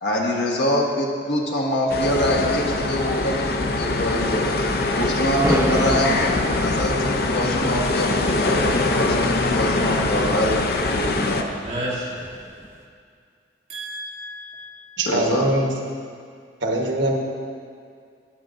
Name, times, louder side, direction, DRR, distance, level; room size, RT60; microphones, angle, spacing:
voice 1, 0.0-4.4 5.0-6.2 6.5-11.5 15.1-15.5, left 1 dB, 80° left, -2 dB, 1.4 m, -24 dB
sound 1, 1.9-11.4, left 2 dB, 55° left, 0.6 m, -23 dB
sound 2, 5.3-12.8, right 1 dB, 15° right, 0.6 m, -31 dB
voice 2, 11.6-12.3 13.7-15.0, right 1 dB, 35° right, -8 dB, 2.5 m, -32 dB
voice 3, 15.0-15.7 16.6-17.2, right 1 dB, 85° right, 1 dB, 1.1 m, -22 dB
17.5 x 6.8 x 2.6 m, 2.2 s
head